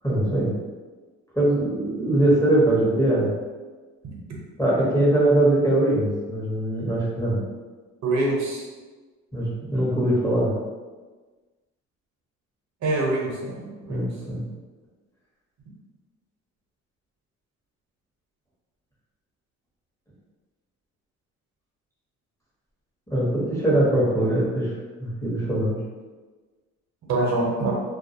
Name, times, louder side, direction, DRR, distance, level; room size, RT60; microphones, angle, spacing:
voice 1, 0.0-0.6 1.3-3.3 4.6-7.4 9.3-10.5 13.9-14.4 23.1-24.7 25.0-25.8, right 1 dB, 10° left, -7 dB, 0.9 m, -22 dB
voice 2, 8.0-8.6 12.8-13.6 13.9-14.0 27.1-27.7, right 2 dB, 60° right, -3 dB, 0.7 m, -24 dB
2.3 x 2.2 x 2.7 m, 1.3 s
cardioid pair, 90°, 30 cm